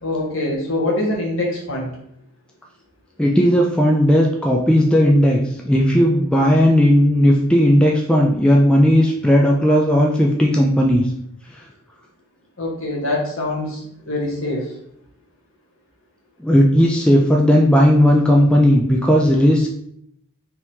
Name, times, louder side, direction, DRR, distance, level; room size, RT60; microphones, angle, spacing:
voice 1, 0.0-1.9 12.6-14.7, left 1 dB, 60° left, -2 dB, 1.3 m, -24 dB
voice 2, 3.2-11.1 16.4-19.7, equal, 5° left, -1 dB, 0.3 m, -15 dB
3.5 x 3.0 x 4.4 m, 0.71 s
head